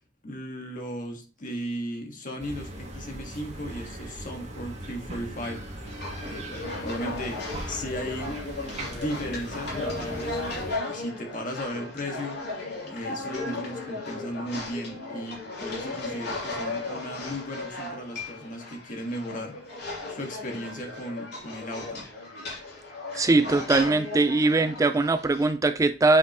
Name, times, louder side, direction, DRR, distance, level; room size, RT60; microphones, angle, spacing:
voice 1, 0.2-5.6 6.2-8.4 8.7-12.4 12.9-19.8 20.1-22.1, equal, 45° left, 1.7 m, -36 dB
sound 1, 2.4-10.7, right 1 dB, 40° right, 1.5 m, -39 dB
sound 2, 5.8-25.5, left 2 dB, 65° left, 3.0 m, -36 dB
voice 2, 23.2-26.2, right 3 dB, 20° right, 0.3 m, -21 dB
8.0 x 5.1 x 3.0 m
head